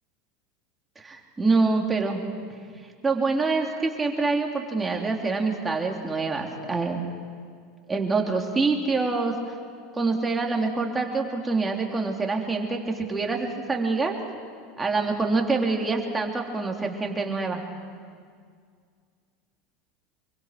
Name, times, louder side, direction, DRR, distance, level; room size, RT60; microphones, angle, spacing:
voice 1, 1.0-2.2 3.0-7.3 7.9-9.4 9.9-14.2 14.8-17.7, right 3 dB, 15° right, 1 dB, 3.5 m, -26 dB
26.0 x 23.5 x 6.1 m, 2.1 s
hypercardioid pair, 80°, 0 cm